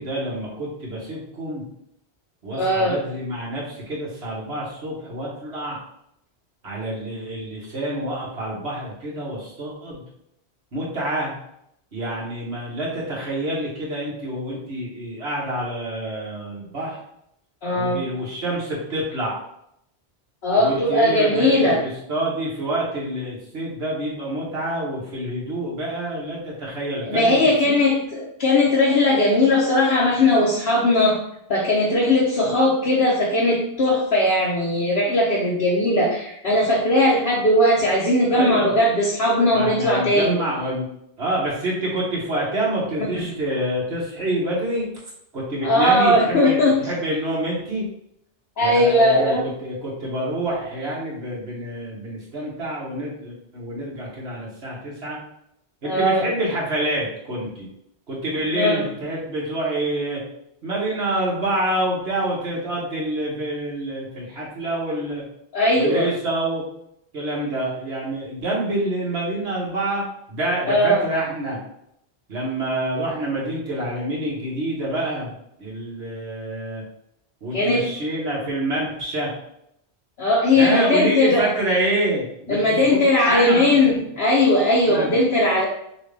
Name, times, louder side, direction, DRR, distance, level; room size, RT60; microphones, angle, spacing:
voice 1, 0.0-1.6 2.4-5.8 6.6-10.0 10.7-11.3 11.9-17.0 17.7-19.3 20.6-27.8 38.3-38.7 39.5-40.9 41.2-44.9 45.3-47.8 48.6-55.2 55.8-57.7 58.1-60.2 60.6-65.2 65.7-66.6 67.1-71.6 72.3-75.3 75.6-76.8 77.4-79.3 80.5-82.9 83.2-84.0 84.9-85.1, right 1 dB, 70° right, -4 dB, 1.7 m, -27 dB
voice 2, 2.5-2.9 17.6-18.0 20.4-21.8 27.1-31.2 31.5-40.4 45.6-46.7 48.6-49.4 55.8-56.2 58.5-58.8 65.5-66.1 70.7-71.0 77.5-77.8 80.2-81.5 82.5-85.7, left 1 dB, 65° left, -5 dB, 1.1 m, -19 dB
5.9 x 2.5 x 3.3 m, 0.76 s
omnidirectional pair, 1.1 m